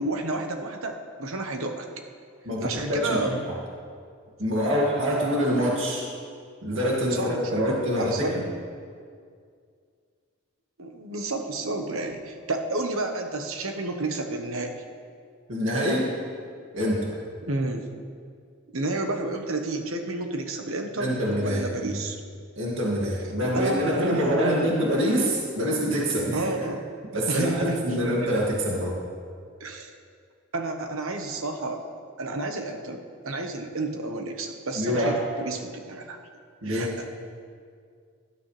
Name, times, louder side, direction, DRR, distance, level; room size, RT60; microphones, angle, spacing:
voice 1, 0.0-1.9 2.6-3.4 7.1-8.5 10.8-14.8 17.4-17.9 18.7-22.2 23.1-24.7 26.3-26.9 27.3-28.0 29.6-29.9 30.5-31.8 32.2-36.2 36.6-37.1, right 2 dB, 90° right, 4 dB, 1.3 m, -31 dB
voice 2, 2.5-3.4 4.4-6.0 6.6-8.4 15.5-16.1 16.7-17.1 21.0-21.9 22.6-26.7 27.1-29.0 34.7-35.2 36.6-36.9, equal, 70° right, -3 dB, 2.2 m, -25 dB
18.0 x 11.5 x 3.3 m, 2.2 s
head